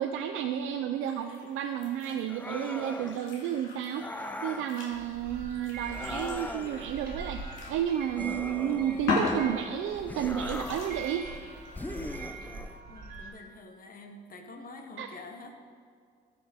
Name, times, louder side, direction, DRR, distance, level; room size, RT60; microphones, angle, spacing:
voice 1, 0.0-4.1 4.4-11.3 15.0-15.1, right 9 dB, 85° right, 5 dB, 0.5 m, -32 dB
sound 1, 1.0-2.2 2.6-7.9 8.1-8.2 9.0-10.0 10.4-12.1, left 3 dB, 90° left, 1.9 m, -37 dB
sound 2, 2.3-3.2 3.9-4.7 5.9-6.9 8.2-9.3 10.1-11.0 11.7-12.8, left 1 dB, 10° left, 0.5 m, -39 dB
sound 3, 4.9-13.3, right 3 dB, 45° right, 2.1 m, -43 dB
voice 2, 12.9-15.6, left 2 dB, 45° left, 5 dB, 1.2 m, -47 dB
13.5 x 6.1 x 3.6 m, 2.2 s
cardioid pair, 90°, 20 cm